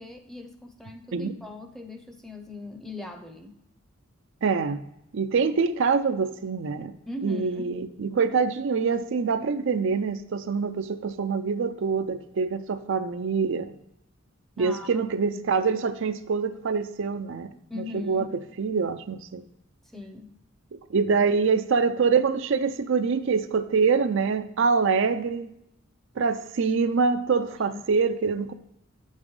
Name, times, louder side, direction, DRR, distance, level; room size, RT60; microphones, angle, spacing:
voice 1, 0.0-3.6 7.1-7.7 14.6-15.0 17.7-18.3 19.9-20.3 27.6-27.8, left 2 dB, ahead, 5 dB, 0.7 m, -39 dB
voice 2, 4.4-4.8 5.1-6.9 7.2-13.7 14.6-18.3 18.6-19.4 20.7-25.5 26.2-28.5, right 5 dB, 65° right, 9 dB, 0.5 m, -25 dB
7.9 x 7.3 x 3.2 m, 0.81 s
head